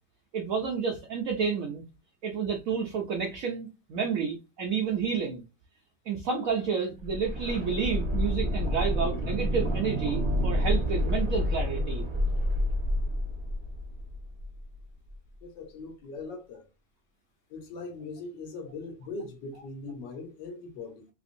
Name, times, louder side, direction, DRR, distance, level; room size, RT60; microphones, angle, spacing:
voice 1, 0.3-1.8 2.2-5.4 6.1-12.0, right 6 dB, 80° right, 0.7 m, -30 dB
sound 1, 7.0-14.8 15.1-15.2, equal, 35° right, 0.4 m, -29 dB
voice 2, 15.4-16.6 17.5-21.1, left 3 dB, 75° left, 1.5 m, -40 dB
3.4 x 3.1 x 2.5 m
omnidirectional pair, 2.1 m